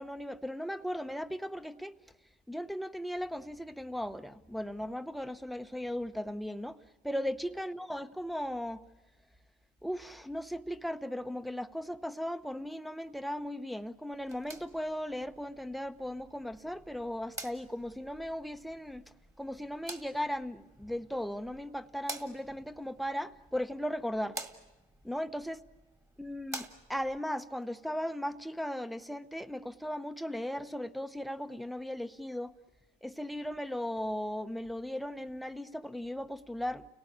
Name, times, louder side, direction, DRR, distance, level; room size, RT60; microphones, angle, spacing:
voice 1, 0.0-2.0 2.5-6.8 7.0-8.8 9.8-19.0 19.4-24.4 25.0-25.6 26.2-32.5 33.0-36.9, equal, ahead, 0.8 m, -37 dB
sound 1, 14.1-27.2, right 2 dB, 20° right, 2.0 m, -49 dB
30.0 x 18.5 x 9.8 m
cardioid pair, 110°, 17 cm